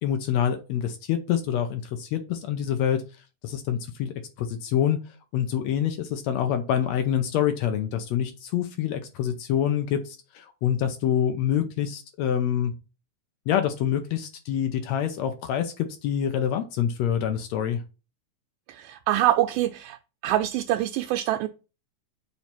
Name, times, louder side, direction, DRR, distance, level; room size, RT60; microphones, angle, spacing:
voice 1, 0.0-3.0 3.4-5.0 5.3-12.7 13.5-17.8, left 9 dB, 75° left, 7 dB, 1.6 m, -26 dB
voice 2, 18.7-20.0 20.2-21.5, right 14 dB, 85° right, 5 dB, 2.1 m, -24 dB
7.1 x 3.2 x 5.9 m, 0.32 s
omnidirectional pair, 3.8 m